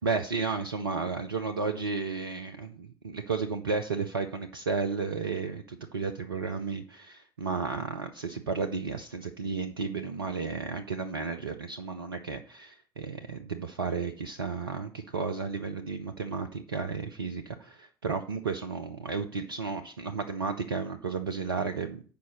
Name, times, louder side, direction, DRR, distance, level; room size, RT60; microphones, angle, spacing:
voice 1, 0.0-22.0, right 5 dB, 80° right, 5 dB, 0.5 m, -33 dB
6.9 x 5.0 x 6.3 m, 0.44 s
figure-of-eight pair, 55°, 12 cm